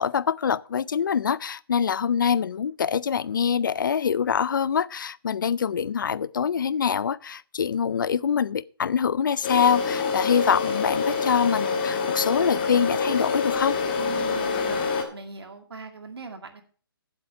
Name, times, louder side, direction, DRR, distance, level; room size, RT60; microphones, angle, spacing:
voice 1, 0.0-13.8, left 7 dB, 55° left, 0.4 m, -24 dB
sound 1, 9.4-15.0, left 5 dB, 25° left, 1.4 m, -26 dB
voice 2, 13.9-16.6, right 4 dB, 90° right, 2.2 m, -40 dB
8.6 x 7.9 x 5.8 m
hypercardioid pair, 170°, 13 cm